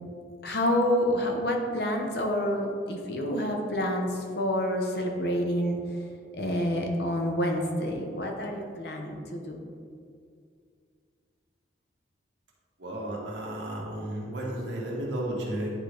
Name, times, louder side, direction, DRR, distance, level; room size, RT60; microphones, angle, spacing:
voice 1, 0.4-5.8 6.4-9.6, equal, 60° left, 2 dB, 0.9 m, -28 dB
voice 2, 12.8-15.7, right 1 dB, 75° right, -4 dB, 1.5 m, -33 dB
10.0 x 3.9 x 3.4 m, 2.3 s
head